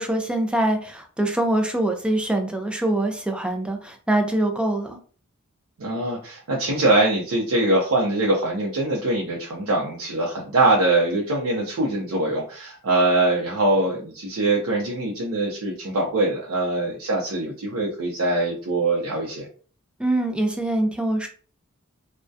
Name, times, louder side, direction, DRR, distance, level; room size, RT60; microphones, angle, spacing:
voice 1, 0.0-5.0 20.0-21.3, right 1 dB, 5° right, 4 dB, 0.3 m, -24 dB
voice 2, 5.8-19.5, right 2 dB, 80° right, -3 dB, 0.6 m, -23 dB
2.2 x 2.1 x 2.6 m, 0.41 s
head